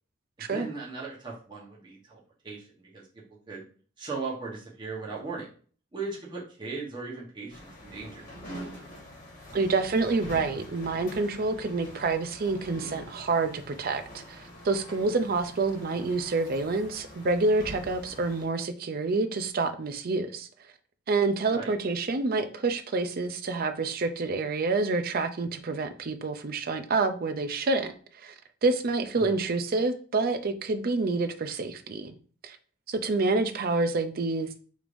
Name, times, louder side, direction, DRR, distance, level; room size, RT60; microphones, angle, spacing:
voice 1, 0.4-3.6 4.0-5.5 5.9-8.2 21.5-21.7 29.1-29.3, right 4 dB, 25° right, 1.1 m, -38 dB
sound 1, 7.5-18.5, equal, 40° left, 1.4 m, -45 dB
voice 2, 9.5-20.5 21.1-28.3 28.6-32.1 32.4-32.6 32.9-34.6, right 3 dB, 45° right, 0.5 m, -28 dB
4.9 x 3.3 x 2.6 m
head